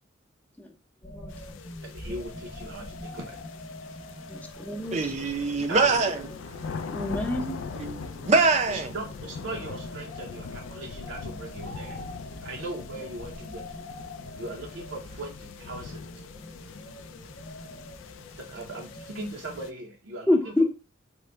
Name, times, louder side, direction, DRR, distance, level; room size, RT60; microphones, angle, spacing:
sound 1, 1.0-19.6, left 2 dB, 50° left, 0.6 m, -44 dB
sound 2, 1.3-19.7, left 5 dB, 90° left, 0.3 m, -42 dB
voice 1, 1.8-3.4 5.7-6.2 8.7-12.0 12.4-13.8 14.4-16.0 18.5-20.5, right 2 dB, 75° right, 0.6 m, -39 dB
voice 2, 4.3-5.1 6.9-7.7 20.3-20.6, left 1 dB, 10° left, 0.6 m, -27 dB
voice 3, 4.9-6.2 7.8-8.9, right 3 dB, 35° right, 0.5 m, -24 dB
3.7 x 2.1 x 3.3 m
head